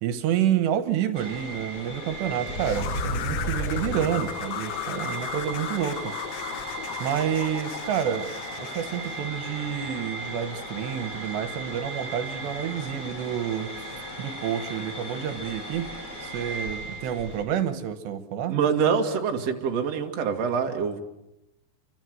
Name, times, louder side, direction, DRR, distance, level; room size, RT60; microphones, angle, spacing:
voice 1, 0.0-6.1 7.0-8.3 8.6-15.9 16.2-18.6, right 9 dB, 80° right, 10 dB, 3.4 m, -29 dB
sound 1, 1.1-17.4, right 1 dB, 20° left, 5.7 m, -36 dB
sound 2, 2.6-9.3, left 10 dB, 90° left, 3.6 m, -35 dB
voice 2, 18.5-21.0, right 6 dB, 45° right, 3 dB, 2.7 m, -25 dB
29.5 x 24.5 x 7.9 m, 0.90 s
omnidirectional pair, 5.0 m